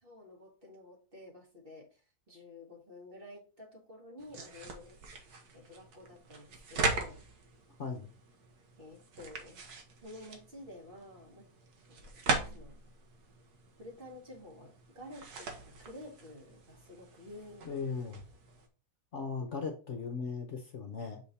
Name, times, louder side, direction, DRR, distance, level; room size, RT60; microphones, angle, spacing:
voice 1, 0.0-2.0 2.3-5.3 5.5-7.2 8.8-9.6 10.0-11.5 11.9-12.0 12.3-12.8 13.8-17.9, left 1 dB, 35° right, -1 dB, 2.1 m, -51 dB
sound 1, 4.2-18.7, right 3 dB, 80° right, 1.7 m, -40 dB
voice 2, 7.8-8.1 17.6-18.2 19.1-21.2, left 5 dB, 55° left, 4 dB, 1.1 m, -37 dB
6.3 x 3.7 x 4.1 m, 0.36 s
omnidirectional pair, 1.7 m